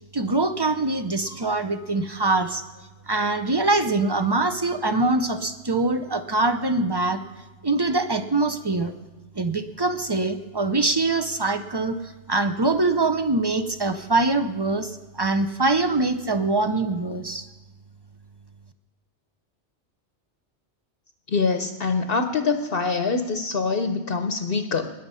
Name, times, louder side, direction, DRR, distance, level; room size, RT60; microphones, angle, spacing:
voice 1, 0.1-2.6 3.1-7.2 7.6-8.9 9.4-12.0 12.3-17.5, right 2 dB, 30° right, 9 dB, 0.5 m, -23 dB
voice 2, 21.3-24.9, left 4 dB, 60° left, 8 dB, 0.9 m, -24 dB
20.0 x 7.2 x 5.5 m, 1.3 s
omnidirectional pair, 1.2 m